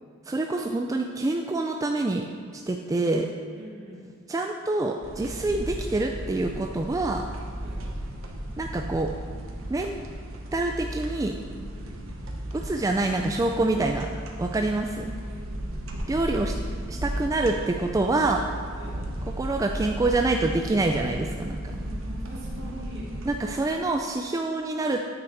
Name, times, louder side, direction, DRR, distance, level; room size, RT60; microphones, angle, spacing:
voice 1, 0.3-2.2 2.7-3.3 4.3-7.2 8.6-9.1 9.7-10.0 10.5-11.4 12.5-14.1 14.4-15.1 16.1-16.5 16.9-18.4 19.4-21.6 23.3-25.0, right 2 dB, 15° right, 3 dB, 0.3 m, -26 dB
voice 2, 3.5-4.1 7.6-7.8 11.7-12.0 15.3-15.5 16.1-16.6 17.1-17.3 18.7-19.0 21.8-23.2, right 1 dB, 60° right, -4 dB, 2.1 m, -43 dB
sound 1, 5.0-23.4, right 1 dB, 75° right, 1.0 m, -35 dB
8.9 x 6.3 x 4.6 m, 2.1 s
head